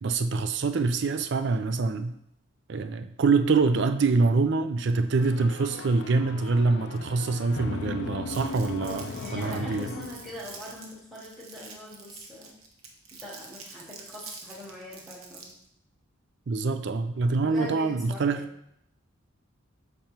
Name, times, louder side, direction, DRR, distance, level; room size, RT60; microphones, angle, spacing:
voice 1, 0.0-2.1 2.7-9.1 9.3-9.9 16.5-18.4, right 4 dB, 55° right, 9 dB, 0.4 m, -25 dB
sound 1, 5.2-10.7, left 4 dB, 60° left, 0.4 m, -38 dB
Crumpling crinkling, 8.3-15.7, right 4 dB, 85° right, 1.0 m, -46 dB
voice 2, 8.8-12.6 13.2-15.5 17.4-18.4, equal, ahead, -7 dB, 1.1 m, -42 dB
6.6 x 5.1 x 3.0 m, 0.75 s
head